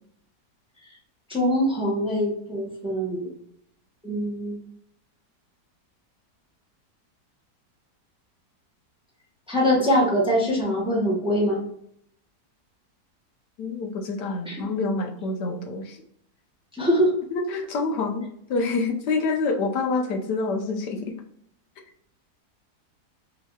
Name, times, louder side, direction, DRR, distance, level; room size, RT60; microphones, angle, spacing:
voice 1, 1.3-3.3 4.0-4.6 9.5-11.6 14.5-14.7 16.8-17.1, equal, 5° right, -4 dB, 1.1 m, -23 dB
voice 2, 13.6-16.0 17.3-21.2, left 3 dB, 90° left, 4 dB, 1.4 m, -27 dB
5.3 x 3.1 x 2.3 m, 0.70 s
omnidirectional pair, 1.7 m